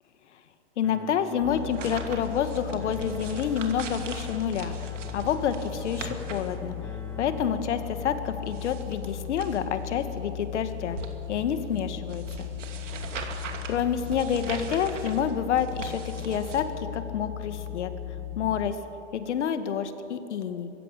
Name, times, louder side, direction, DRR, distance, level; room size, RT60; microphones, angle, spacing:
voice 1, 0.8-6.8 7.2-11.0 11.3-12.5 13.7-17.9 18.4-18.8 19.1-20.7, left 8 dB, 70° left, 9 dB, 1.9 m, -28 dB
sound 1, 0.8-8.8, left 1 dB, 5° left, 1.0 m, -47 dB
sound 2, 1.4-18.7, left 12 dB, 40° left, 3.3 m, -37 dB
sound 3, 1.5-16.6, right 5 dB, 80° right, 2.8 m, -42 dB
23.5 x 16.0 x 7.0 m, 3.0 s
hypercardioid pair, 135°, 37 cm